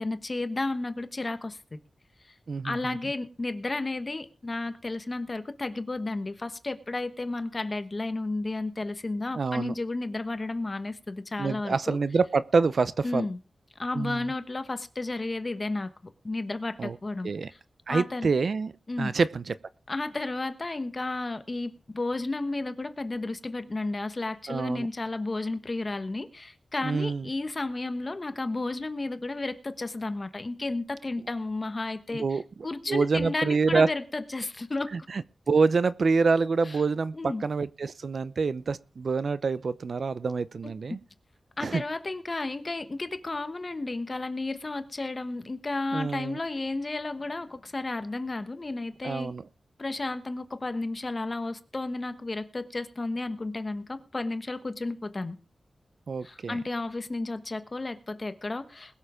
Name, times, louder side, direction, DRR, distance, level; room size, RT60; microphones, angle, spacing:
voice 1, 0.0-1.8 2.6-12.0 13.0-13.4 13.8-15.9 16.2-17.3 17.9-18.3 18.9-19.1 19.9-34.9 36.6-36.8 37.1-37.4 41.6-49.3 49.8-55.4 56.2-59.0, left 2 dB, 35° left, 1.3 m, -32 dB
voice 2, 2.5-3.0 9.3-9.7 11.4-13.2 13.9-14.3 16.8-17.0 17.2-17.5 17.9-18.7 19.0-19.5 24.5-24.9 26.8-27.3 32.2-32.4 32.9-33.9 34.9-41.0 41.6-41.8 45.9-46.4 49.0-49.4 56.1-56.6, right 4 dB, 65° right, 0.7 m, -26 dB
20.5 x 7.2 x 5.1 m
wide cardioid pair, 105°, 0 cm